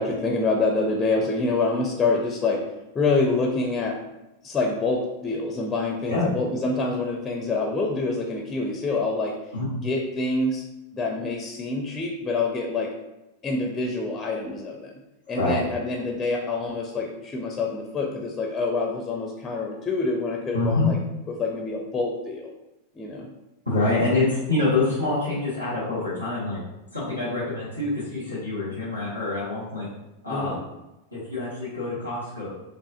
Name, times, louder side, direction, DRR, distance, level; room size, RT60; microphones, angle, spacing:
voice 1, 0.0-2.6 2.9-4.0 4.4-9.4 9.7-10.6 10.9-12.9 13.4-14.9 15.3-21.0 21.3-22.5 22.9-23.3 27.1-27.4 30.3-30.6, left 3 dB, 20° left, 1 dB, 0.5 m, -26 dB
voice 2, 20.5-20.9 23.6-26.6 26.9-29.9 30.2-30.6 31.1-32.5, left 2 dB, 90° right, -9 dB, 1.2 m, -26 dB
4.7 x 2.4 x 2.5 m, 0.96 s
figure-of-eight pair, 90°, 0 cm